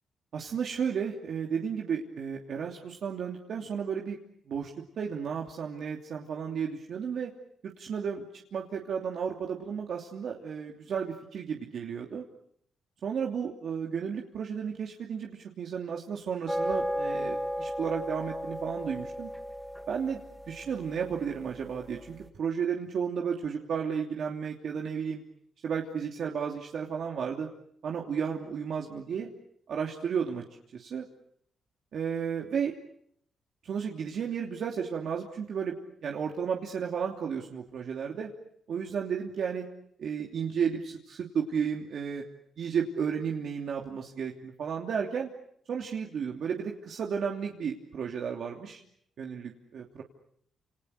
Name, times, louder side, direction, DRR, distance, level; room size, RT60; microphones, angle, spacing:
voice 1, 0.3-4.2 4.5-7.3 7.6-12.2 13.0-19.3 19.9-25.2 25.6-27.5 27.8-29.3 29.7-30.4 30.7-31.1 31.9-32.7 33.6-35.8 36.0-38.3 38.7-39.7 40.0-42.2 42.6-45.3 45.7-48.8 49.2-50.0, right 7 dB, 65° right, 0 dB, 3.0 m, -33 dB
sound 1, 16.5-22.0, equal, ahead, 3.1 m, -35 dB
29.0 x 28.5 x 6.7 m, 0.70 s
cardioid pair, 75°, 0 cm